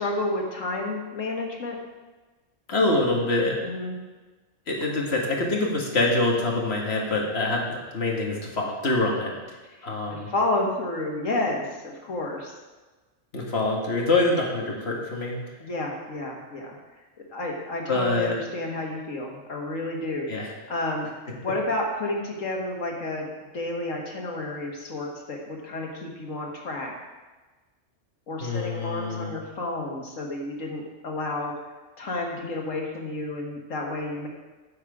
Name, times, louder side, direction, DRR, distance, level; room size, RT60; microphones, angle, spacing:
voice 1, 0.0-1.8 3.6-4.0 9.8-12.5 15.6-16.8 17.3-20.3 20.7-21.1 21.4-23.3 23.5-26.9 28.3-31.5 32.0-34.3, left 2 dB, 90° left, 0 dB, 2.0 m, -30 dB
voice 2, 2.7-3.6 4.7-9.3 9.8-10.3 13.3-15.4 17.9-18.4 20.3-20.5 21.3-21.4 28.4-29.3, left 2 dB, 55° left, -1 dB, 1.9 m, -25 dB
9.0 x 7.5 x 4.9 m, 1.2 s
omnidirectional pair, 1.3 m